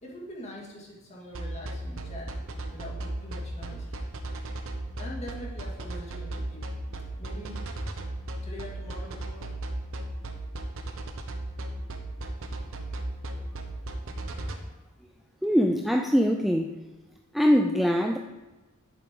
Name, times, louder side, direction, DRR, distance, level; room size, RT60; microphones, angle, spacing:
voice 1, 0.0-4.1 5.0-6.7 7.2-7.6 8.4-9.5, equal, 30° left, -3 dB, 2.3 m, -43 dB
sound 1, 1.3-14.6, right 1 dB, 65° right, 1.0 m, -35 dB
voice 2, 15.4-16.8 17.3-18.2, equal, ahead, 3 dB, 0.4 m, -23 dB
10.5 x 8.6 x 3.8 m, 1.1 s
head